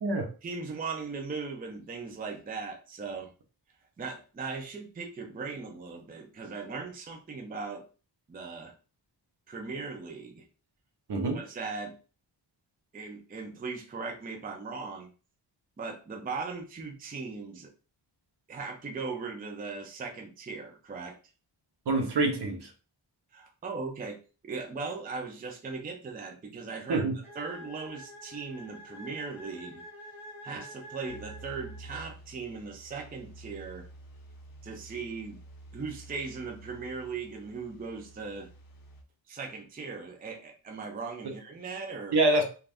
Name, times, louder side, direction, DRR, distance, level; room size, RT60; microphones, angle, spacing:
voice 1, 0.4-3.3 4.0-7.8 8.3-8.7 9.5-10.4 11.3-12.0 12.9-15.1 15.8-17.7 18.5-21.2 23.3-24.2 24.4-27.1 27.4-29.8 30.4-33.9 34.6-35.4 35.7-38.5 39.3-42.2, right 4 dB, 20° right, 3 dB, 0.4 m, -38 dB
voice 2, 11.1-11.4 21.9-22.7 26.9-27.1 42.1-42.4, right 2 dB, 60° right, 4 dB, 0.7 m, -25 dB
sound 1, 27.2-32.1, left 1 dB, 5° right, 1.2 m, -48 dB
sound 2, 31.1-39.0, right 2 dB, 50° left, 0.6 m, -50 dB
2.5 x 2.4 x 3.3 m, 0.35 s
wide cardioid pair, 150°, 45 cm